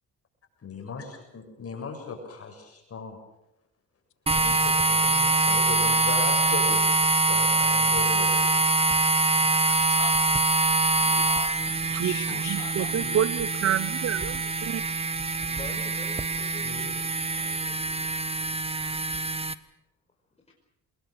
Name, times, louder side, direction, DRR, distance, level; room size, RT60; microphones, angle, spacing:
voice 1, 0.6-3.2 4.4-6.9 7.3-9.5 16.6-17.1, left 4 dB, 50° left, 3 dB, 7.3 m, -38 dB
voice 2, 4.3-4.7 9.7-10.2 10.7-13.2, left 11 dB, 80° left, 8 dB, 2.6 m, -41 dB
sound 1, 4.3-19.5, right 2 dB, 20° right, 1.3 m, -24 dB
voice 3, 12.5-14.8, right 10 dB, 55° right, 16 dB, 0.9 m, -28 dB
voice 4, 15.5-18.1, left 2 dB, 20° left, -1 dB, 5.4 m, -46 dB
26.0 x 21.0 x 6.6 m, 0.85 s
cardioid pair, 90°, 30 cm